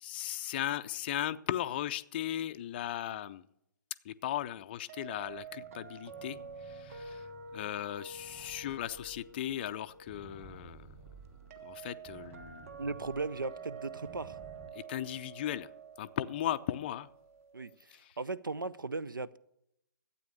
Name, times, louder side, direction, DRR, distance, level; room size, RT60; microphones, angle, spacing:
voice 1, 0.0-3.4 4.0-6.4 6.6-10.9 11.6-12.7 14.7-15.7 16.0-17.1 17.9-18.2, left 12 dB, 30° left, 0.4 m, -37 dB
sound 1, 4.9-17.7, right 4 dB, 45° right, 1.3 m, -49 dB
sound 2, 5.3-14.7, right 5 dB, 15° right, 1.4 m, -55 dB
voice 2, 12.8-14.4 17.5-19.4, right 3 dB, 75° right, 0.5 m, -37 dB
12.5 x 8.5 x 6.5 m
figure-of-eight pair, 130°, 11 cm